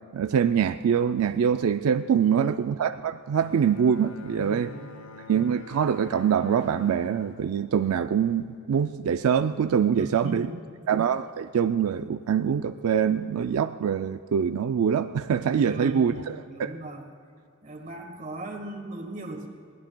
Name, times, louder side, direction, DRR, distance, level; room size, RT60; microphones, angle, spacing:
voice 1, 0.1-4.7 5.3-10.5 10.9-16.8, right 7 dB, 85° right, 10 dB, 0.4 m, -24 dB
Bowed string instrument, 3.3-8.8, left 4 dB, 70° left, 0.6 m, -47 dB
voice 2, 4.4-5.0 9.9-10.6 15.6-17.1 17.6-19.5, right 1 dB, 35° right, 3 dB, 1.5 m, -38 dB
21.5 x 17.0 x 2.2 m, 2.3 s
head